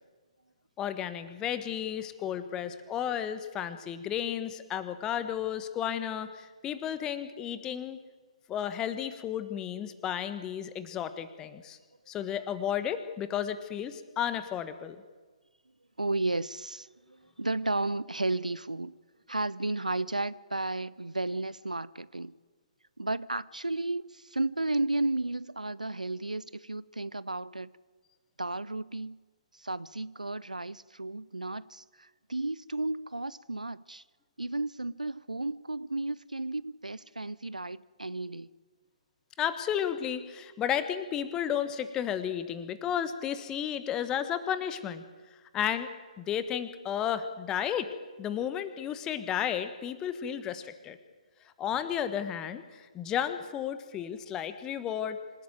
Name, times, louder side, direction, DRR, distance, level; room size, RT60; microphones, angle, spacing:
voice 1, 0.8-8.0 8.5-11.8 12.1-15.0 39.4-45.0 45.5-45.9 46.2-47.9 48.2-51.0 51.6-55.2, left 9 dB, 15° left, 1.3 m, -33 dB
voice 2, 16.0-18.9 19.3-22.3 23.0-27.7 28.4-29.2 29.6-34.0 34.4-38.5, right 2 dB, 80° right, 0.6 m, -33 dB
26.0 x 12.5 x 9.1 m
figure-of-eight pair, 130°, 4 cm